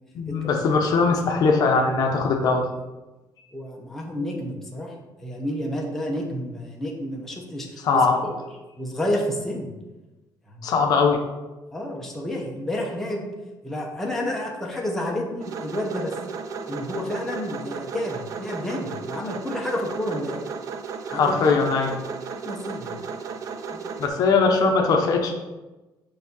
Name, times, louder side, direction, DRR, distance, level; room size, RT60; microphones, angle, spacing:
voice 1, 0.1-2.6 7.8-8.2 10.6-11.2 21.1-21.9 24.0-25.3, left 4 dB, 55° left, 2 dB, 0.8 m, -20 dB
voice 2, 3.5-4.9 5.2-8.3 8.8-9.7 10.5-10.7 11.7-13.2 13.6-16.1 16.7-20.4 21.1-21.4 22.4-23.0 23.7-23.8, left 1 dB, 5° left, -2 dB, 0.8 m, -30 dB
sound 1, 15.4-24.1, right 5 dB, 45° right, 0.4 m, -34 dB
6.8 x 2.7 x 5.3 m, 1.1 s
cardioid pair, 170°, 8 cm